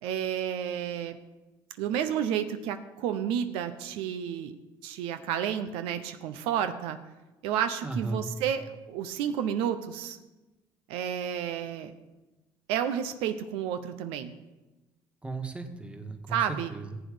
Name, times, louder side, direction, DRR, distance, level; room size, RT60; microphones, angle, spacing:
voice 1, 0.0-1.2 1.8-4.6 4.8-7.0 7.4-10.2 10.9-11.9 12.7-14.3 16.3-16.7, right 9 dB, 85° right, 9 dB, 0.8 m, -31 dB
voice 2, 7.8-8.3 15.2-17.0, right 3 dB, 10° right, 5 dB, 1.6 m, -36 dB
15.0 x 8.3 x 5.1 m, 1.1 s
supercardioid pair, 85°, 9 cm